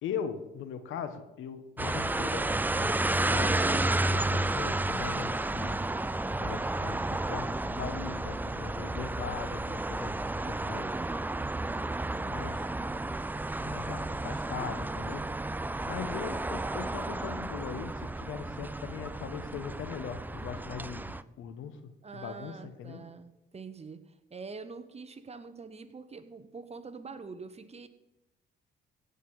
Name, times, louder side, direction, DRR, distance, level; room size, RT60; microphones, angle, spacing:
voice 1, 0.0-5.8 6.4-10.2 10.5-11.0 12.3-12.6 13.6-15.2 15.9-21.8 22.1-23.0, left 7 dB, 85° left, 10 dB, 1.4 m, -40 dB
sound 1, 1.8-21.2, right 2 dB, 10° right, 0.5 m, -32 dB
voice 2, 22.0-27.9, right 4 dB, 30° right, 10 dB, 1.2 m, -45 dB
16.0 x 5.5 x 8.2 m, 0.95 s
cardioid pair, 90°, 20 cm